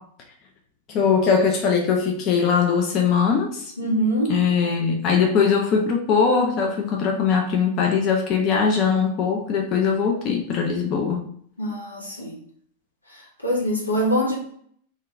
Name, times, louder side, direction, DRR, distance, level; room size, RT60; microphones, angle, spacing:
voice 1, 0.9-3.7 4.3-11.3, left 6 dB, 40° left, 1 dB, 0.5 m, -21 dB
voice 2, 3.8-4.4 11.6-12.4 13.4-14.4, equal, 90° left, -3 dB, 0.9 m, -23 dB
2.7 x 2.5 x 3.3 m, 0.62 s
figure-of-eight pair, 90°, 0 cm